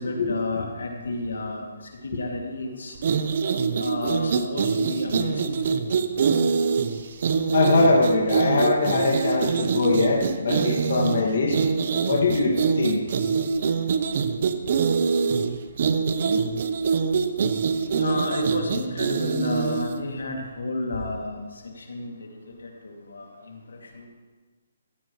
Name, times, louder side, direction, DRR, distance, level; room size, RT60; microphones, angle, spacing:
voice 1, 0.0-1.6 2.0-2.9 3.8-5.6 17.9-21.4 21.8-22.2 22.6-23.6 24.0-24.1, left 2 dB, 85° left, 1 dB, 2.4 m, -31 dB
sound 1, 3.0-20.0, right 5 dB, 55° right, 0.8 m, -24 dB
voice 2, 7.5-11.6 12.1-13.0, left 3 dB, 65° left, -2 dB, 2.1 m, -22 dB
15.5 x 14.0 x 3.2 m, 1.4 s
hypercardioid pair, 155°, 0 cm